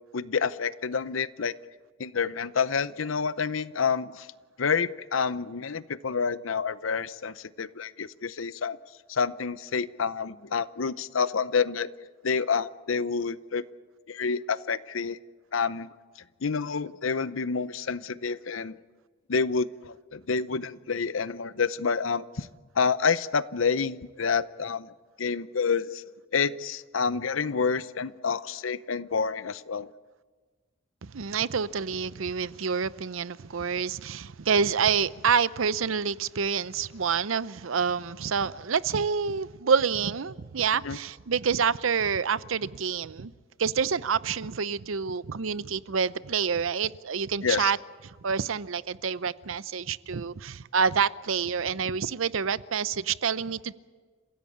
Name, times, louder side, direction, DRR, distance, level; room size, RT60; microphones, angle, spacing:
voice 1, 0.1-1.5 2.0-4.3 4.6-8.8 9.1-11.9 12.2-13.6 14.1-15.2 15.5-15.9 16.4-18.8 19.3-22.5 22.8-24.9 25.2-26.0 26.3-29.9 40.8-41.0 47.4-47.7, left 5 dB, 80° left, 0.7 m, -28 dB
voice 2, 31.0-43.3 43.6-47.8 48.0-53.7, right 6 dB, 85° right, 0.7 m, -27 dB
30.0 x 16.0 x 8.6 m
head